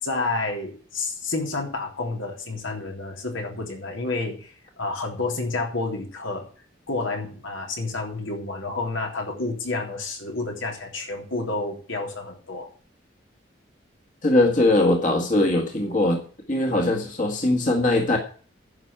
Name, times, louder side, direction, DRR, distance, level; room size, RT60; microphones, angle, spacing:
voice 1, 0.0-6.4 6.9-12.7, left 3 dB, 80° left, 2 dB, 3.4 m, -30 dB
voice 2, 14.2-16.2 16.5-18.2, left 2 dB, 40° left, 2 dB, 1.9 m, -21 dB
10.5 x 6.3 x 8.8 m, 0.42 s
head